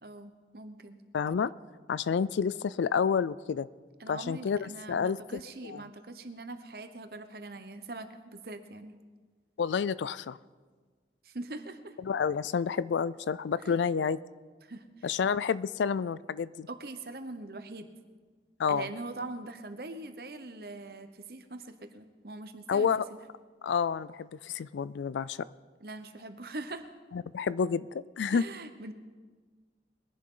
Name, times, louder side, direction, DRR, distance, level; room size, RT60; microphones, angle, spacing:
voice 1, 0.0-1.0 4.0-9.0 11.2-12.0 13.6-13.8 14.6-15.1 16.7-17.9 18.7-23.2 25.8-26.9 28.3-28.9, right 2 dB, 55° right, 8 dB, 1.0 m, -42 dB
voice 2, 1.1-1.5 1.9-3.7 4.1-5.8 9.6-10.4 12.1-14.2 15.0-16.7 18.6-18.9 22.7-23.0 23.6-25.4 27.1-28.4, left 6 dB, 85° left, 19 dB, 0.4 m, -29 dB
22.0 x 10.5 x 3.8 m, 1.5 s
head